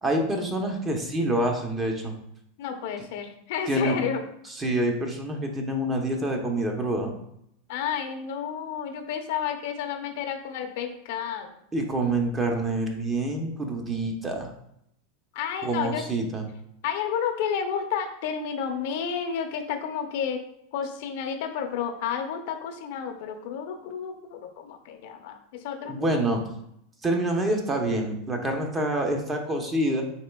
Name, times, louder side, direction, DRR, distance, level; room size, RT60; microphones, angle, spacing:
voice 1, 0.0-2.1 3.7-4.0 4.6-7.1 11.7-14.5 15.6-16.4 25.8-26.4 27.0-30.0, right 1 dB, 20° right, 3 dB, 0.7 m, -26 dB
voice 2, 2.6-4.2 7.7-11.5 15.3-16.1 16.8-20.4 20.7-26.2, left 7 dB, 65° left, 5 dB, 0.5 m, -31 dB
4.3 x 3.1 x 2.2 m, 0.75 s
supercardioid pair, 120°, 0 cm